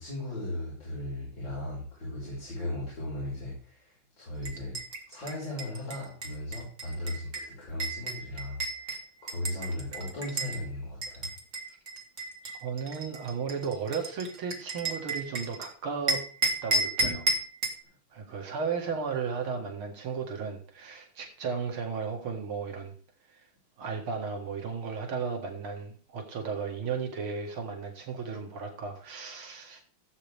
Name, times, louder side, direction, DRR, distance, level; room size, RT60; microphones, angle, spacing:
voice 1, 0.0-4.8 5.1-11.3, left 1 dB, 60° left, -6 dB, 5.8 m, -37 dB
sound 1, 4.4-10.6 11.0-15.7 16.1-17.8, right 2 dB, 40° right, 2.1 m, -33 dB
voice 2, 12.4-16.2 16.6-17.3 18.1-23.0 23.3-23.4 23.8-29.8, right 5 dB, 85° right, 3 dB, 2.6 m, -34 dB
16.5 x 8.3 x 3.5 m, 0.43 s
omnidirectional pair, 2.3 m